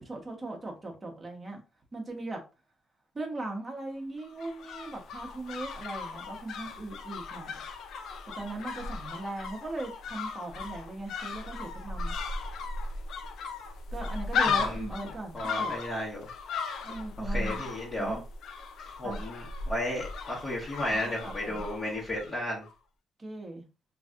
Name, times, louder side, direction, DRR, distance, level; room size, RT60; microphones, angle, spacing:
voice 1, 0.0-1.6 1.9-2.4 3.1-7.5 8.4-12.1 13.9-15.7 16.8-17.6 18.0-18.2 19.0-19.2 20.9-21.6 23.2-23.6, right 2 dB, 25° right, 1.1 m, -39 dB
sound 1, 4.2-22.4 22.6-22.7, left 4 dB, 75° left, 0.5 m, -36 dB
voice 2, 14.5-14.9 15.3-16.3 17.2-18.2 19.0-22.6, left 1 dB, 25° left, 1.3 m, -34 dB
3.1 x 2.7 x 2.4 m
cardioid pair, 90°, 0 cm